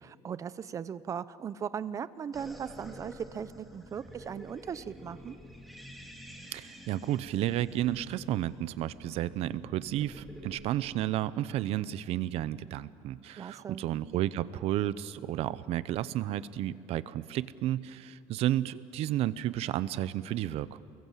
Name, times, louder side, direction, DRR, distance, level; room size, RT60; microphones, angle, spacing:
voice 1, 0.0-5.4 13.4-13.8, right 7 dB, 25° right, 16 dB, 0.6 m, -38 dB
sound 1, 2.3-10.6, equal, ahead, 2.3 m, -49 dB
voice 2, 6.5-20.8, right 13 dB, 60° right, 16 dB, 0.7 m, -32 dB
29.0 x 22.0 x 7.5 m, 2.4 s
cardioid pair, 175°, 12 cm